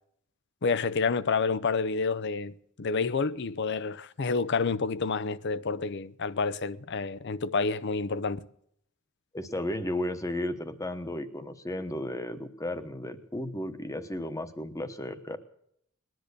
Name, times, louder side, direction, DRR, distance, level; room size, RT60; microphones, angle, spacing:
voice 1, 0.6-8.4, left 4 dB, 50° left, 0.6 m, -29 dB
voice 2, 9.3-15.4, left 1 dB, 15° left, 1.1 m, -34 dB
20.0 x 10.5 x 6.7 m
head